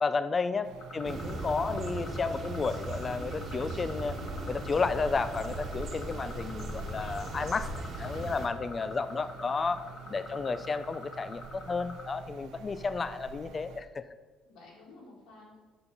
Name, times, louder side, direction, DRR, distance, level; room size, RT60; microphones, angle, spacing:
voice 1, 0.0-4.2 4.5-7.7 8.0-9.8 10.1-14.0, left 4 dB, 25° left, 12 dB, 0.3 m, -32 dB
voice 2, 0.5-0.9 8.0-9.4 10.0-10.5 14.4-15.6, left 2 dB, 75° left, -3 dB, 2.8 m, -54 dB
sound 1, 0.6-13.8, right 6 dB, 75° right, 0.7 m, -48 dB
sound 2, 0.8-12.1, left 3 dB, 50° left, 1.3 m, -46 dB
sound 3, 1.0-8.5, right 2 dB, 40° right, 1.2 m, -38 dB
7.1 x 6.8 x 5.4 m, 1.3 s
cardioid pair, 150°, 0 cm